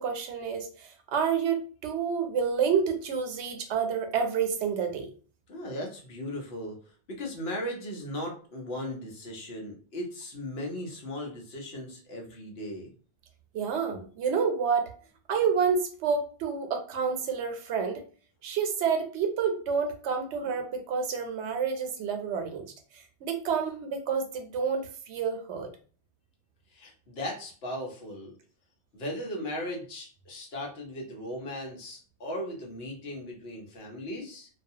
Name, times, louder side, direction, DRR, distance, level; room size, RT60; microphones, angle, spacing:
voice 1, 0.0-5.1 13.5-14.9 15.3-18.0 18.4-22.7 23.2-25.7, right 6 dB, 85° right, 5 dB, 0.9 m, -29 dB
voice 2, 5.5-6.7 7.1-12.9 26.7-28.3 28.9-34.5, left 1 dB, 65° left, 0 dB, 1.0 m, -37 dB
2.3 x 2.2 x 2.6 m, 0.40 s
omnidirectional pair, 1.1 m